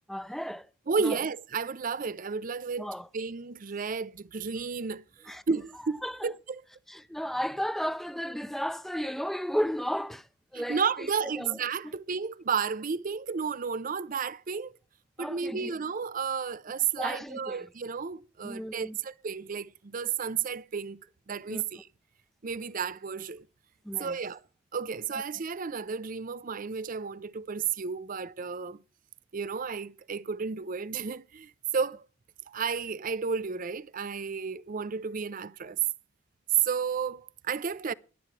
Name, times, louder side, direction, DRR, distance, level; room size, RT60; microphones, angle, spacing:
voice 1, 0.1-0.7 1.0-1.2 2.8-3.1 5.3-5.4 6.0-6.3 6.9-10.3 10.5-10.8 11.4-11.6 15.2-15.7 17.0-17.7 18.4-19.0 21.5-21.6 23.8-24.2 25.1-25.2, equal, ahead, 0.6 m, -33 dB
voice 2, 0.9-6.6 10.5-14.7 15.2-21.0 21.3-21.9 22.4-23.4 24.0-24.4 24.7-28.8 29.3-32.0 32.5-35.8 36.6-37.9, right 5 dB, 45° right, 0.5 m, -32 dB
21.5 x 11.5 x 3.2 m
head